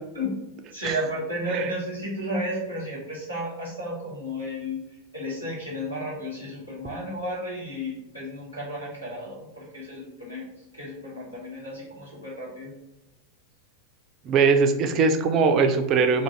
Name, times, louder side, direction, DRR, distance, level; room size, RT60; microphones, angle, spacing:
voice 1, 0.7-4.8 5.1-10.4 10.7-12.7, equal, 90° left, -7 dB, 1.5 m, -33 dB
voice 2, 14.2-16.2, right 5 dB, 35° right, 7 dB, 0.4 m, -21 dB
3.6 x 2.5 x 3.0 m, 0.92 s
figure-of-eight pair, 90°, 0 cm